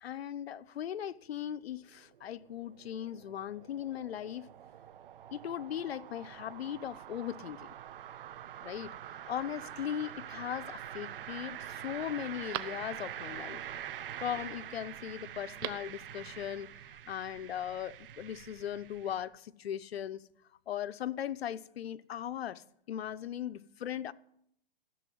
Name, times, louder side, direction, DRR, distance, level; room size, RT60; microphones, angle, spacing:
voice 1, 0.0-4.5 5.3-7.7 8.6-8.9 9.3-13.6 14.2-16.7 17.1-20.2 20.7-24.1, left 10 dB, 85° left, 0.8 m, -38 dB
sound 1, 1.6-19.2, right 11 dB, 60° right, 1.0 m, -45 dB
Telephone, 10.2-10.8 11.3-11.4 11.8-13.3 15.3-16.0 16.3-16.4, right 14 dB, 25° right, 0.5 m, -44 dB
15.0 x 7.1 x 9.2 m
hypercardioid pair, 150°, 30 cm